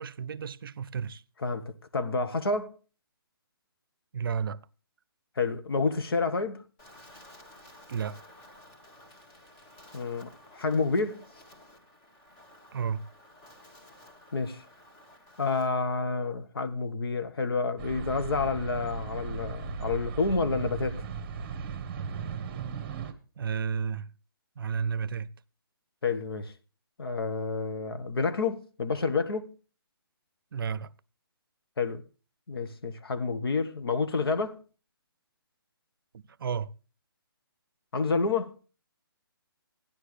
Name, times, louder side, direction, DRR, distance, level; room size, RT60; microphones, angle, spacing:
voice 1, 0.0-1.2 4.1-4.6 7.9-8.2 12.7-13.1 23.4-24.1 24.6-25.3 30.5-30.9 36.4-36.7, right 6 dB, 65° right, 0.6 m, -32 dB
voice 2, 1.4-2.7 5.4-6.6 9.9-11.2 14.3-14.6 15.4-21.1 26.0-26.5 27.0-29.5 31.8-32.0 32.5-34.6 37.9-38.6, left 4 dB, 75° left, 1.2 m, -29 dB
Wind, 6.8-15.7, left 1 dB, 20° left, 1.4 m, -54 dB
sound 1, 17.8-23.1, right 6 dB, 30° right, 1.0 m, -37 dB
13.0 x 10.5 x 3.3 m
hypercardioid pair, 160°, 13 cm